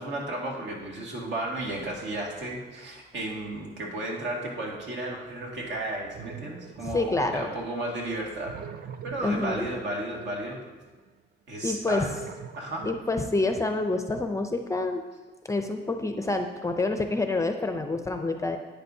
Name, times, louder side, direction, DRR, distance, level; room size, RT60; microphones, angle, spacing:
voice 1, 0.0-8.6 9.0-10.6 11.5-12.1 12.6-12.9, right 1 dB, 70° right, -1 dB, 2.0 m, -33 dB
sound 1, 1.5-2.8 3.4-3.8 6.1-7.9 8.2-11.1 11.9-14.4, right 7 dB, 50° right, 0.5 m, -46 dB
voice 2, 6.8-7.5 9.2-9.7 11.6-12.1 12.8-15.0 15.5-18.6, left 2 dB, 15° left, 6 dB, 0.5 m, -27 dB
11.0 x 8.8 x 2.7 m, 1.2 s
wide cardioid pair, 165°, 19 cm